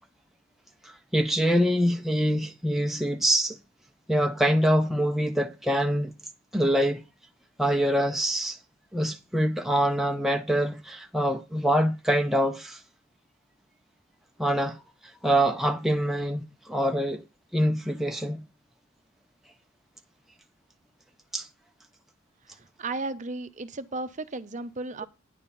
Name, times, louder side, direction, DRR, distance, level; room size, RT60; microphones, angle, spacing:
voice 1, 0.8-3.6 4.1-6.1 6.5-7.0 7.6-8.6 8.9-12.8 14.4-14.8 15.2-17.2 17.5-18.4 21.3-21.5, equal, ahead, 0.6 m, -25 dB
voice 2, 22.6-25.0, right 2 dB, 40° right, 0.7 m, -34 dB
9.9 x 4.1 x 7.1 m
head